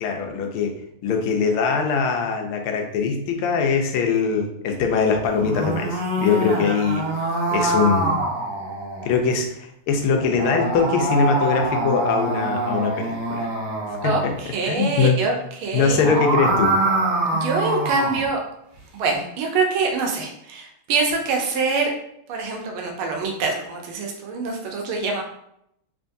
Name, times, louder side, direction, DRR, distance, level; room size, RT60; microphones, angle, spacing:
voice 1, 0.0-7.1 7.5-8.2 9.0-13.5 14.0-14.3 14.6-15.2 15.7-16.8, left 5 dB, 85° left, 3 dB, 1.5 m, -22 dB
sound 1, 5.3-9.1 10.1-14.3 15.8-18.3, right 1 dB, 60° right, 1.3 m, -24 dB
voice 2, 14.0-15.4 15.6-16.0 17.4-18.4 18.9-21.9 22.3-25.2, right 4 dB, 80° right, 2 dB, 1.5 m, -24 dB
3.6 x 3.5 x 2.6 m, 0.76 s
omnidirectional pair, 2.3 m